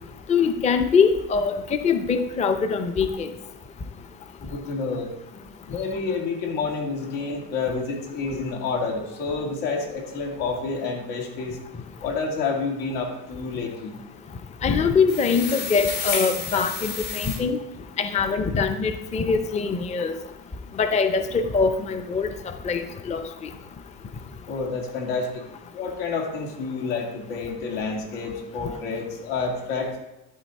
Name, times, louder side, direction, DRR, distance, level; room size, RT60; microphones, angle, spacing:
voice 1, 0.3-3.3 14.6-17.6 18.0-20.1 20.8-22.3 22.6-23.3, left 5 dB, 15° left, 8 dB, 0.5 m, -23 dB
voice 2, 4.4-11.6 12.0-14.0 24.5-25.4 25.7-30.0, left 4 dB, 90° left, 0 dB, 2.4 m, -29 dB
sound 1, 15.1-17.4, left 5 dB, 70° left, 2.9 m, -30 dB
12.5 x 4.3 x 4.1 m, 0.96 s
cardioid pair, 120°, 43 cm